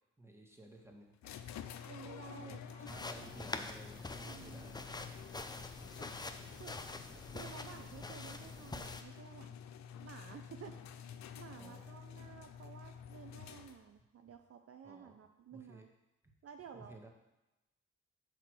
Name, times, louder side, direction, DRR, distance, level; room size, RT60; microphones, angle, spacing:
voice 1, 0.2-1.3 2.4-4.9 5.2-6.0 10.7-10.8 11.5-11.9 14.8-15.2 15.5-15.9 16.7-17.1, right 2 dB, 10° right, 1 dB, 1.6 m, -56 dB
sound 1, 1.2-14.0, left 8 dB, 70° left, 0.6 m, -50 dB
voice 2, 1.9-3.0 4.2-4.8 6.0-6.1 6.5-6.8 7.1-9.6 10.0-10.7 11.4-15.9 16.4-17.0, right 7 dB, 55° right, 6 dB, 0.6 m, -53 dB
sound 2, 2.9-9.0, left 2 dB, 15° left, 0.6 m, -46 dB
5.9 x 4.6 x 6.3 m, 0.99 s
supercardioid pair, 50°, 29 cm